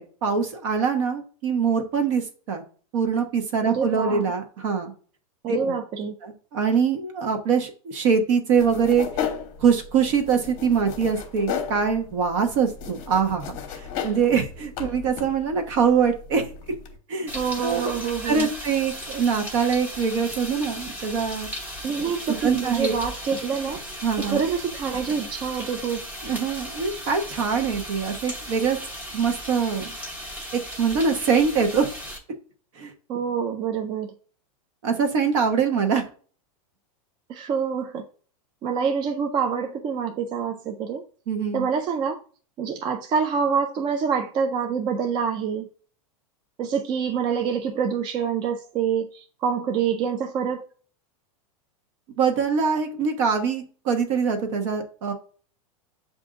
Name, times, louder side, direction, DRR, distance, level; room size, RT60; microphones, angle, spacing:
voice 1, 0.0-2.6 2.9-4.9 5.5-5.6 6.2-9.1 9.6-16.5 17.1-17.3 17.6-18.0 18.2-21.5 22.3-23.0 24.0-24.4 26.2-28.8 29.1-29.9 30.5-31.9 32.8-32.9 34.8-36.0 41.3-41.7 52.2-55.1, right 6 dB, 60° right, 1.0 m, -23 dB
voice 2, 3.6-4.3 5.4-6.1 17.3-18.5 21.8-23.8 24.2-26.1 33.1-34.1 37.3-38.1 38.6-41.0 41.5-42.2 42.6-45.7 46.6-50.6, right 6 dB, 25° right, 0.3 m, -26 dB
sound 1, 8.6-17.0, left 8 dB, 40° left, 0.8 m, -35 dB
sound 2, 17.3-32.2, equal, 10° right, 0.8 m, -36 dB
7.5 x 2.6 x 2.4 m
supercardioid pair, 140°, 18 cm